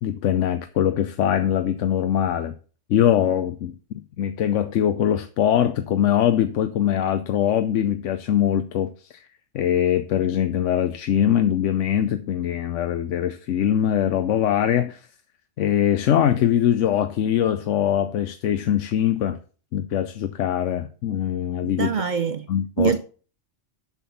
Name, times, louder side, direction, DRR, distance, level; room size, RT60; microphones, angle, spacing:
voice 1, 0.0-2.5 2.9-9.3 9.5-15.0 15.6-19.4 19.7-21.9 22.5-22.9, left 10 dB, 80° left, 1.0 m, -22 dB
voice 2, 21.8-22.5 22.8-23.0, right 6 dB, 55° right, 0.6 m, -23 dB
7.1 x 6.0 x 7.0 m
omnidirectional pair, 1.3 m